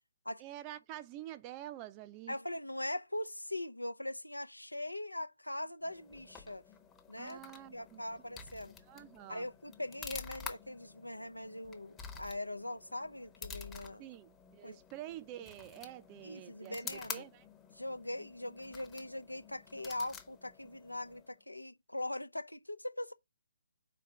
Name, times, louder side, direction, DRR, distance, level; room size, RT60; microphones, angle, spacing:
voice 1, 0.4-2.4 7.2-8.0 8.9-9.4 14.0-17.5, right 13 dB, 20° right, 0.5 m, -47 dB
voice 2, 2.3-6.6 7.1-7.4 7.7-8.7 9.3-14.0 14.6-14.8 16.2-17.3 17.7-23.1, left 1 dB, 90° left, 0.7 m, -41 dB
sound 1, 5.8-21.4, left 6 dB, 10° left, 0.9 m, -50 dB
5.2 x 4.4 x 5.9 m
figure-of-eight pair, 140°, 0 cm